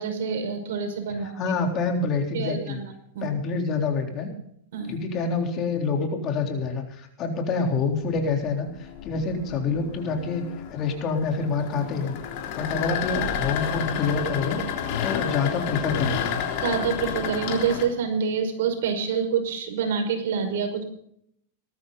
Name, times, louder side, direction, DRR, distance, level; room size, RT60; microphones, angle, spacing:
voice 1, 0.0-1.3 2.3-2.8 3.1-3.3 4.7-5.0 16.6-20.8, right 6 dB, 75° right, 5 dB, 5.5 m, -27 dB
voice 2, 1.4-2.8 3.2-4.3 4.9-8.7 9.0-10.4 10.7-12.2 12.6-14.6 15.0-16.4, left 4 dB, 35° left, 3 dB, 3.7 m, -27 dB
sound 1, 8.0-17.9, left 8 dB, 55° left, 3.8 m, -31 dB
19.5 x 13.5 x 4.0 m, 0.69 s
supercardioid pair, 145°, 0 cm